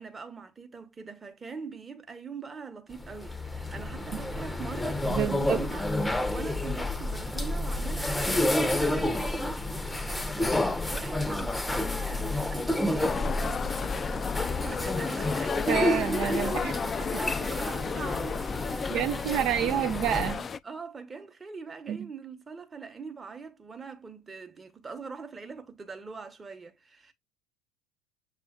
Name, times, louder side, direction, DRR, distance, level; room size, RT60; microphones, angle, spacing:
voice 1, 0.0-5.9 6.3-19.2 19.6-19.8 20.6-27.1, right 5 dB, 25° right, 1.0 m, -43 dB
sound 1, 2.9-20.3, left 1 dB, 10° left, 0.7 m, -30 dB
voice 2, 5.1-5.6 15.7-16.8 18.9-20.5 21.9-22.1, right 10 dB, 55° right, 0.4 m, -28 dB
sound 2, 13.0-20.6, left 6 dB, 30° left, 0.3 m, -33 dB
6.9 x 2.4 x 2.3 m
hypercardioid pair, 75°, 0 cm